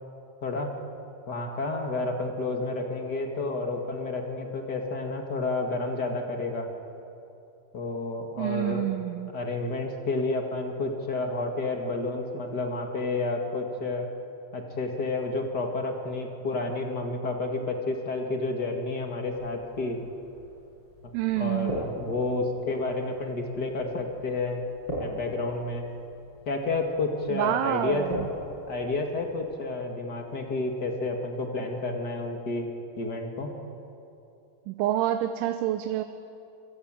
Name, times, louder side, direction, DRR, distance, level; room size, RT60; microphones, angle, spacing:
voice 1, 0.4-0.7 1.3-6.7 7.7-8.9 9.3-14.0 14.5-20.0 21.4-24.6 25.0-25.9 26.4-28.1 28.7-32.7 33.0-33.5, left 2 dB, 65° left, 3 dB, 1.0 m, -30 dB
voice 2, 8.4-9.3 21.1-21.8 27.3-28.3 34.7-36.0, right 12 dB, 85° right, 8 dB, 3.3 m, -27 dB
sound 1, 19.3-29.5, equal, 20° left, 7.9 m, -41 dB
27.5 x 24.0 x 8.9 m, 2.8 s
omnidirectional pair, 5.3 m